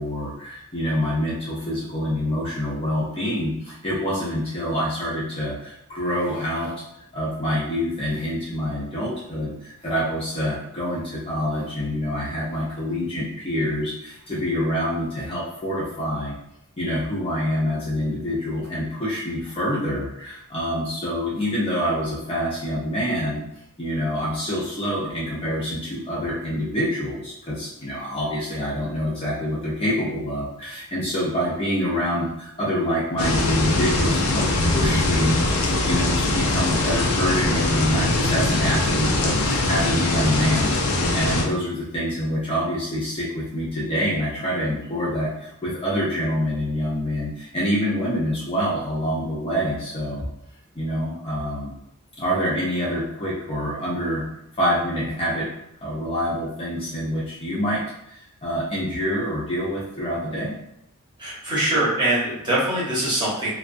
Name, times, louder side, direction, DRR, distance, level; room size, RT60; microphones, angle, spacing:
voice 1, 0.0-6.7 7.1-16.3 16.8-23.4 23.8-40.8 41.1-50.3 50.8-51.7 52.2-54.2 54.6-55.5 55.8-57.8 58.1-60.6, equal, 25° left, -7 dB, 0.6 m, -26 dB
sound 1, 33.2-41.4, left 2 dB, 75° left, 0.5 m, -22 dB
voice 2, 61.2-63.5, right 1 dB, 20° right, -8 dB, 0.9 m, -23 dB
2.3 x 2.3 x 2.5 m, 0.80 s
head